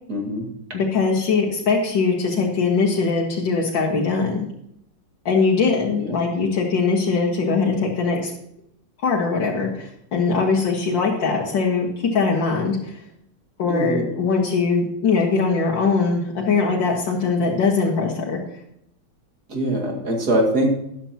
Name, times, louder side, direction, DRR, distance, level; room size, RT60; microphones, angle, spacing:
voice 1, 0.1-0.5 6.0-6.2 10.3-10.4 13.7-14.1 19.5-20.7, right 1 dB, 60° right, 1 dB, 2.7 m, -23 dB
voice 2, 0.7-4.5 5.3-8.3 9.0-12.9 13.6-18.4, left 4 dB, 90° left, -3 dB, 2.2 m, -21 dB
13.0 x 11.0 x 2.9 m, 0.78 s
omnidirectional pair, 2.0 m